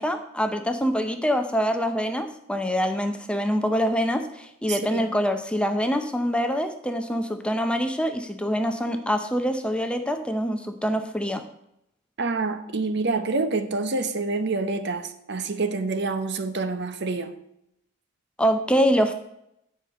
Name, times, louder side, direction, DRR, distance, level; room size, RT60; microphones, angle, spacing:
voice 1, 0.0-11.4 18.4-19.1, equal, 5° left, 0.6 m, -25 dB
voice 2, 4.7-5.0 12.2-17.3, right 3 dB, 55° right, 0.8 m, -27 dB
9.0 x 5.1 x 7.7 m
head